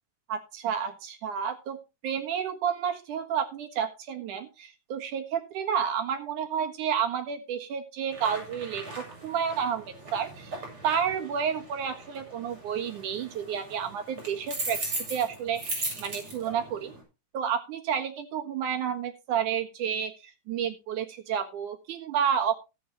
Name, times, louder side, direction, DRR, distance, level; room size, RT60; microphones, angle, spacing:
voice 1, 0.3-1.8 2.0-14.8 15.1-16.9 17.3-22.5, right 8 dB, 80° right, 6 dB, 3.0 m, -30 dB
sound 1, 8.1-17.0, right 2 dB, 40° right, 7.5 m, -39 dB
17.5 x 8.8 x 3.0 m, 0.27 s
omnidirectional pair, 3.5 m